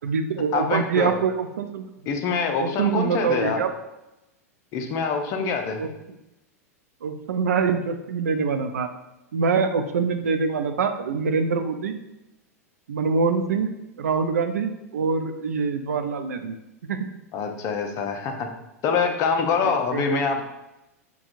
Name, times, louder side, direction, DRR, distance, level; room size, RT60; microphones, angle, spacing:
voice 1, 0.0-1.8 2.6-3.7 5.8-5.9 7.0-8.9 9.3-11.9 12.9-13.7 14.0-16.5 16.9-17.1 19.9-20.2, right 5 dB, 75° right, 8 dB, 0.4 m, -24 dB
voice 2, 0.5-1.1 2.1-3.6 4.7-5.8 17.3-18.5 18.8-20.4, left 5 dB, 40° left, 4 dB, 0.6 m, -25 dB
5.7 x 2.3 x 2.6 m, 0.96 s
hypercardioid pair, 95°, 8 cm